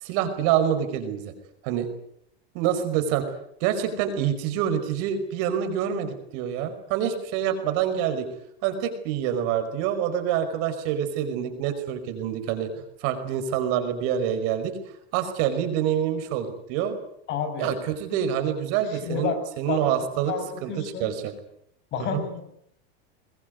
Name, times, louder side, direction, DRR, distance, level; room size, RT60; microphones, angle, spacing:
voice 1, 0.0-1.3 1.6-1.9 2.6-3.2 3.6-8.3 8.6-12.7 13.0-14.8 15.1-17.0 17.6-20.3 20.6-21.3 22.1-22.2, right 9 dB, 50° right, 8 dB, 5.2 m, -26 dB
voice 2, 17.3-17.7 18.9-19.4 19.7-19.9 20.2-21.1 21.9-22.4, left 7 dB, 35° left, 8 dB, 5.7 m, -30 dB
22.5 x 21.5 x 9.4 m, 0.72 s
supercardioid pair, 150°, 31 cm